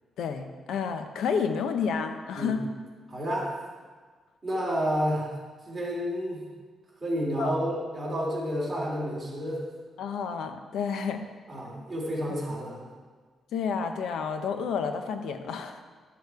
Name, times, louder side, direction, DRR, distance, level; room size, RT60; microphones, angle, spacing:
voice 1, 0.2-2.6 7.4-7.6 10.0-11.3 12.3-12.4 13.5-15.8, left 6 dB, 85° left, 7 dB, 0.8 m, -30 dB
voice 2, 3.1-3.6 4.4-5.3 5.6-6.4 7.0-9.6 11.5-12.8, equal, 20° right, -5 dB, 3.1 m, -30 dB
11.5 x 6.8 x 4.7 m, 1.5 s
cardioid pair, 145°, 0 cm